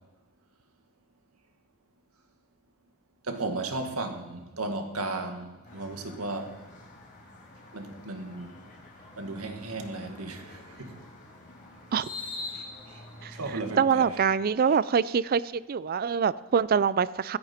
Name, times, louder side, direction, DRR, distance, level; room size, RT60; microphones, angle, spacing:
voice 1, 3.2-6.6 7.7-8.6 9.2-11.0 12.5-13.0 13.3-14.2 14.7-14.8, right 2 dB, 90° right, 1.8 m, -35 dB
sound 1, 5.6-13.7, left 3 dB, 35° left, 4.6 m, -45 dB
voice 2, 13.8-17.4, right 6 dB, 45° right, 0.4 m, -25 dB
25.5 x 9.0 x 4.4 m
head